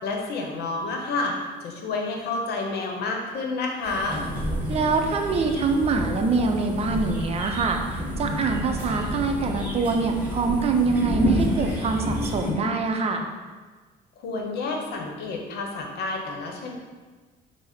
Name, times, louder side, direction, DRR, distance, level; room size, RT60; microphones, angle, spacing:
voice 1, 0.0-1.3 1.6-4.2 14.2-16.7, left 3 dB, 75° left, 1 dB, 0.8 m, -29 dB
sound 1, 3.8-12.5, equal, 10° right, 1.0 m, -29 dB
voice 2, 4.7-13.2, right 4 dB, 35° right, 4 dB, 0.5 m, -24 dB
4.7 x 2.1 x 4.2 m, 1.3 s
cardioid pair, 110°, 17 cm